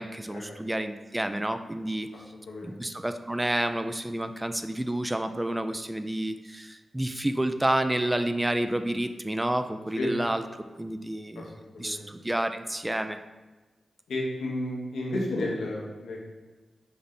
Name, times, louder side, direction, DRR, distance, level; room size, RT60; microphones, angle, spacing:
voice 1, 0.0-2.1 2.6-10.4 10.8-13.2, right 1 dB, 15° right, 9 dB, 0.3 m, -29 dB
voice 2, 2.5-2.8 10.0-10.1 11.3-11.4 11.7-12.1 14.1-16.3, left 1 dB, 85° left, -2 dB, 0.8 m, -32 dB
5.4 x 2.1 x 3.7 m, 1.2 s
supercardioid pair, 40°, 0 cm